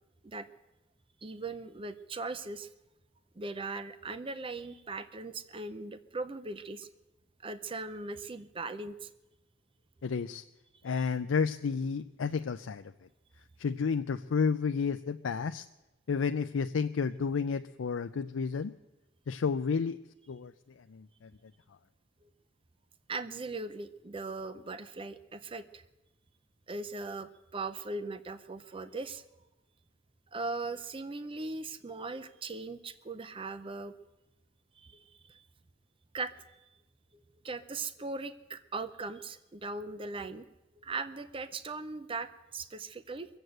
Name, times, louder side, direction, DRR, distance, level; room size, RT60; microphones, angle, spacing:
voice 1, 1.2-2.7 3.4-6.9 7.4-9.1 23.1-25.8 26.7-29.2 30.3-33.9 34.8-35.4 36.1-36.3 37.4-40.4 40.8-43.3, right 3 dB, 30° right, 12 dB, 0.6 m, -39 dB
voice 2, 10.0-10.4 10.8-12.9 13.6-15.7 16.1-18.7 19.3-20.0 20.3-20.5 20.8-21.3, left 5 dB, 90° left, 8 dB, 0.4 m, -31 dB
22.5 x 7.9 x 7.9 m, 0.99 s
head